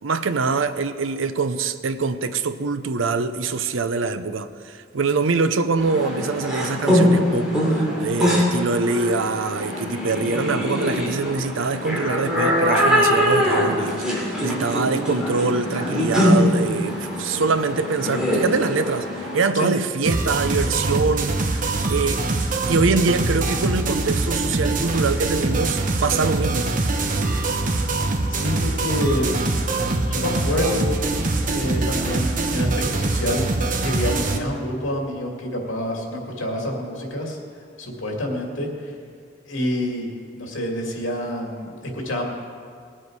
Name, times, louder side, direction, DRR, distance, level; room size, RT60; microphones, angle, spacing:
voice 1, 0.0-22.2 22.7-26.7, right 4 dB, 85° right, 0.6 m, -24 dB
sound 1, 5.8-19.5, equal, 5° right, 2.9 m, -22 dB
sound 2, 20.1-34.4, right 2 dB, 45° right, 1.0 m, -23 dB
voice 2, 28.3-29.6 30.1-30.9 31.5-33.4 33.8-37.4 37.8-39.0 39.4-40.1 40.4-42.3, left 1 dB, 90° left, 2.4 m, -27 dB
19.5 x 7.6 x 4.7 m
head